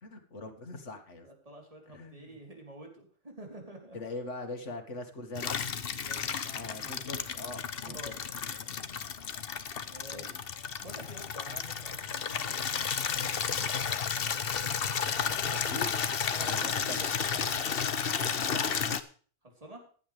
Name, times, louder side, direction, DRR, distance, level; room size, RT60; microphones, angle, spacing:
voice 1, 0.0-1.3 1.9-2.3 3.9-5.8 6.5-8.1 10.1-10.4 15.5-15.9 16.5-17.1 18.2-19.1, left 2 dB, 80° left, 4 dB, 2.4 m, -42 dB
voice 2, 1.2-4.0 6.0-6.9 7.9-8.2 9.0-9.3 9.8-12.6 13.1-13.9 14.2-15.8 16.3-17.8 19.4-19.8, right 1 dB, 30° right, 1 dB, 4.1 m, -49 dB
Water tap faucet / Liquid, 5.4-19.0, left 7 dB, 55° left, 1.1 m, -32 dB
15.5 x 11.0 x 3.4 m, 0.42 s
omnidirectional pair, 1.2 m